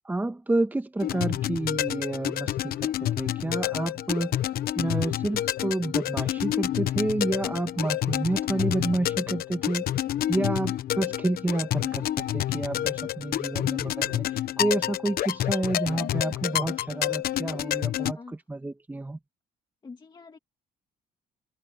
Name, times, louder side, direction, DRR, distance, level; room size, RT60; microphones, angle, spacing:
voice 1, 0.0-4.4 4.7-9.8 10.3-19.2, right 2 dB, 10° right, 1.3 m, -29 dB
sound 1, 1.0-18.1, left 12 dB, 65° left, 1.0 m, -29 dB
voice 2, 19.8-20.4, left 4 dB, 25° left, 1.9 m, -44 dB
cardioid pair, 110°, 17 cm